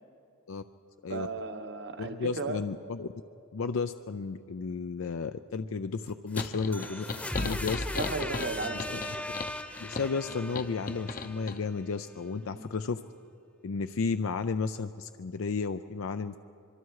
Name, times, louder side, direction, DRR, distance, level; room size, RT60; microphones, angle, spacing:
voice 1, 1.1-2.6 8.0-9.3 12.4-12.7, right 3 dB, 55° right, 8 dB, 1.2 m, -36 dB
voice 2, 2.0-3.1 3.5-7.1 7.4-7.9 9.8-13.0 13.6-16.4, left 4 dB, 70° left, 10 dB, 0.5 m, -33 dB
sound 1, 6.1-12.0, left 1 dB, 5° left, 0.9 m, -38 dB
sound 2, 6.4-11.6, left 4 dB, 40° left, 0.7 m, -37 dB
25.0 x 23.5 x 4.8 m, 2.6 s
head